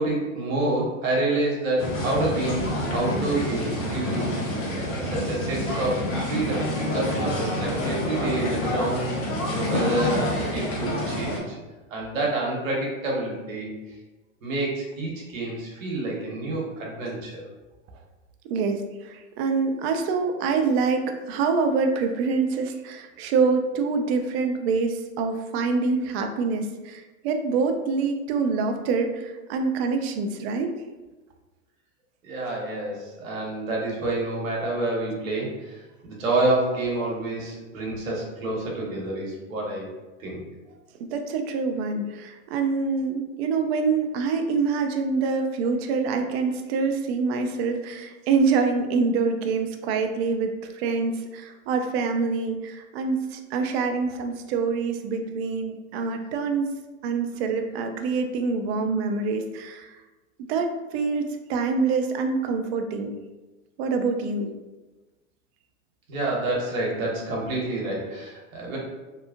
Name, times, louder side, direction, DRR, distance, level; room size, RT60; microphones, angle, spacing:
voice 1, 0.0-4.3 4.8-9.2 9.5-11.6 11.9-13.7 14.4-17.4 32.2-39.9 40.2-40.4 66.1-68.8, right 2 dB, 75° right, -3 dB, 1.0 m, -28 dB
sound 1, 1.8-11.4, left 1 dB, 40° left, 0.8 m, -27 dB
voice 2, 18.5-30.7 41.0-56.7 57.0-60.0 60.5-63.1 63.8-64.5, right 4 dB, 50° right, 5 dB, 0.5 m, -25 dB
2.8 x 2.3 x 2.4 m, 1.2 s
hypercardioid pair, 110°, 41 cm